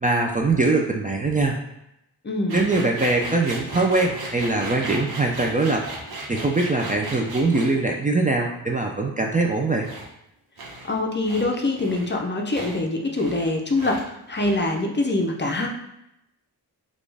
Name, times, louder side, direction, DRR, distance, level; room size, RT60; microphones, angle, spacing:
voice 1, 0.0-1.6 2.5-5.8 6.3-9.9, right 3 dB, 20° right, 0 dB, 0.4 m, -22 dB
voice 2, 2.2-2.7 10.8-14.0 14.3-15.7, left 2 dB, 25° left, 1 dB, 0.6 m, -24 dB
sound 1, 2.5-7.7 9.8-10.1 10.6-11.0 11.2-11.5 11.8-12.2 12.5-12.8 13.1-13.5 13.7-14.0 14.3-14.7, right 2 dB, 60° right, 1.2 m, -36 dB
4.1 x 2.4 x 3.3 m, 0.84 s
cardioid pair, 75°, 41 cm